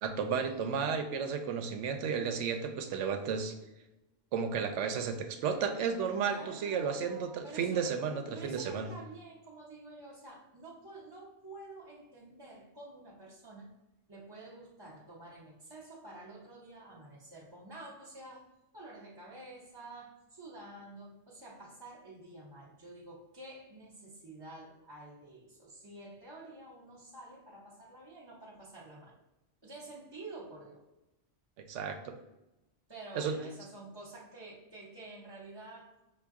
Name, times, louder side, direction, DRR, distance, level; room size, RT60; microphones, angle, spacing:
voice 1, 0.0-3.5 4.3-8.9 31.6-32.2 33.1-33.4, right 6 dB, 90° right, 7 dB, 0.9 m, -33 dB
voice 2, 6.2-8.0 8.3-13.7 14.1-18.5 18.7-29.1 29.6-30.8 32.9-35.9, right 2 dB, 25° right, -8 dB, 0.7 m, -49 dB
5.5 x 2.2 x 3.6 m, 0.98 s
omnidirectional pair, 1.2 m